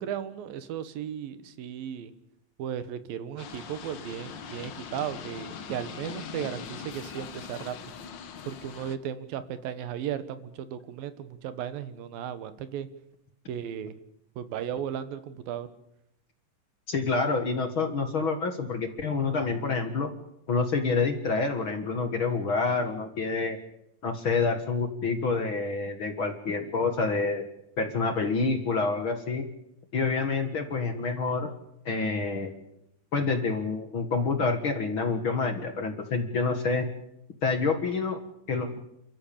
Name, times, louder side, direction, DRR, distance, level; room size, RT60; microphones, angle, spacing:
voice 1, 0.0-2.1 2.6-7.8 8.5-12.9 13.5-14.0 14.4-15.7, right 9 dB, 85° right, 12 dB, 3.1 m, -35 dB
sound 1, 3.4-9.0, left 6 dB, 80° left, 1.0 m, -41 dB
voice 2, 16.9-20.1 20.5-23.6 24.0-27.5 27.8-29.5 29.9-31.5 31.9-32.5 33.1-36.9 37.4-38.2 38.5-38.8, left 4 dB, 45° left, 7 dB, 2.0 m, -27 dB
29.0 x 14.0 x 8.8 m, 0.80 s
omnidirectional pair, 4.0 m